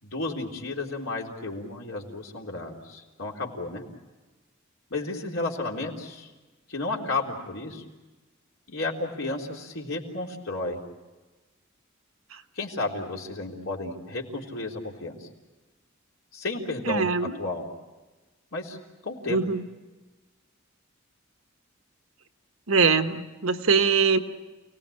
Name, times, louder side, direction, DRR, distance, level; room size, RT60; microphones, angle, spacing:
voice 1, 0.0-3.8 4.9-6.3 6.7-7.8 8.7-10.8 12.6-15.3 16.3-17.1 17.4-17.7 18.5-18.8 19.0-19.4, left 2 dB, 80° left, -1 dB, 3.8 m, -32 dB
voice 2, 16.9-17.4 19.3-19.7 22.7-24.2, right 5 dB, 85° right, 8 dB, 1.3 m, -22 dB
29.5 x 19.0 x 8.6 m, 1.2 s
head